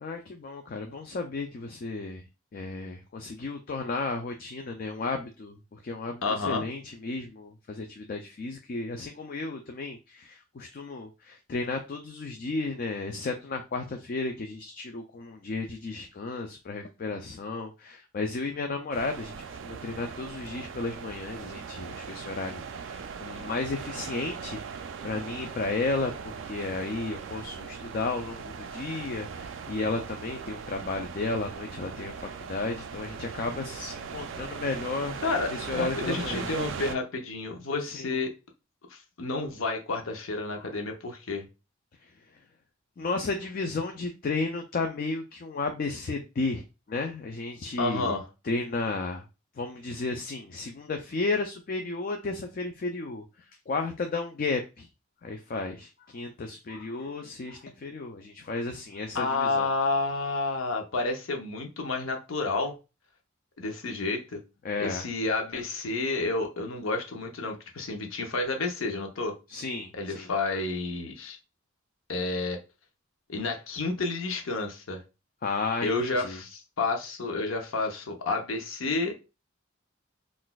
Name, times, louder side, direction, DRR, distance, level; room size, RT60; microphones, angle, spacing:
voice 1, 0.0-2.2 2.5-36.5 37.9-38.1 43.0-48.1 48.4-49.2 49.6-53.2 53.7-54.9 55.2-59.7 64.6-65.1 69.5-70.3 75.4-76.4, left 3 dB, 45° left, 0.4 m, -33 dB
voice 2, 6.2-6.7 35.2-38.3 38.9-41.5 47.8-48.3 59.1-62.7 63.6-64.4 64.8-69.3 69.9-71.4 72.1-72.6 73.3-75.0 75.8-79.1, left 3 dB, 75° left, 0.7 m, -30 dB
sound 1, 18.9-36.9, right 6 dB, 60° right, 0.3 m, -39 dB
3.9 x 2.5 x 2.2 m
head